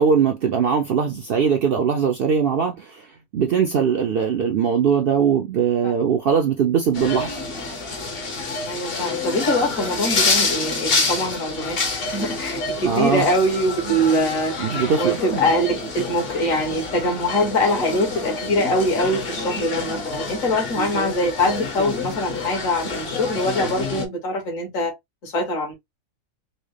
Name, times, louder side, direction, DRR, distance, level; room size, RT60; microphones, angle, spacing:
voice 1, 0.0-7.3 12.8-13.3 14.6-15.2, right 7 dB, 65° right, 0.5 m, -20 dB
sound 1, 6.9-24.1, left 3 dB, 45° left, 1.0 m, -27 dB
voice 2, 8.6-11.8 12.1-14.7 15.0-24.9 25.2-25.7, left 1 dB, 65° left, 1.8 m, -23 dB
4.2 x 2.0 x 3.2 m
omnidirectional pair, 1.5 m